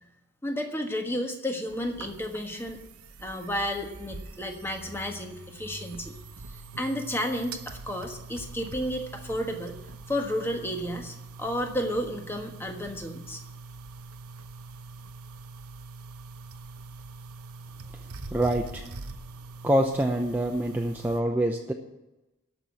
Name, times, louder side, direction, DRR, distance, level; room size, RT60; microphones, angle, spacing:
voice 1, 0.4-2.8 3.2-6.1 6.5-9.7 10.1-13.4, equal, 10° left, 3 dB, 1.4 m, -32 dB
sound 1, 1.7-21.2, right 3 dB, 90° right, 0.9 m, -44 dB
voice 2, 18.3-18.8 19.6-21.7, right 1 dB, 10° right, 2 dB, 0.7 m, -25 dB
13.5 x 6.0 x 9.7 m, 1.0 s
head